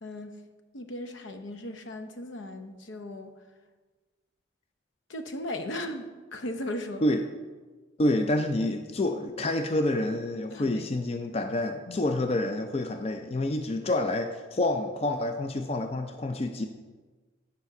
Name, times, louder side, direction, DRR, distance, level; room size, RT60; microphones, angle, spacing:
voice 1, 0.0-0.4 0.7-3.4 5.1-7.0 10.5-10.9 11.9-12.1, left 1 dB, 75° left, 7 dB, 0.7 m, -37 dB
voice 2, 8.0-16.6, left 1 dB, 30° left, 6 dB, 0.4 m, -28 dB
8.1 x 5.1 x 5.9 m, 1.3 s
head